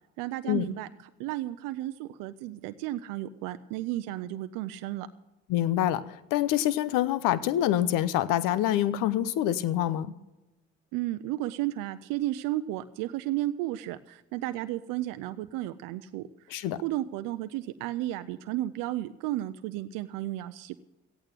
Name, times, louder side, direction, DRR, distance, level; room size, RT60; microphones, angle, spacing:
voice 1, 0.2-0.9 1.2-5.1 10.9-20.8, right 15 dB, 90° right, 11 dB, 0.6 m, -33 dB
voice 2, 5.5-10.1 16.5-16.8, left 12 dB, 85° left, 16 dB, 0.7 m, -26 dB
14.5 x 8.9 x 7.8 m, 0.97 s
supercardioid pair, 60°, 32 cm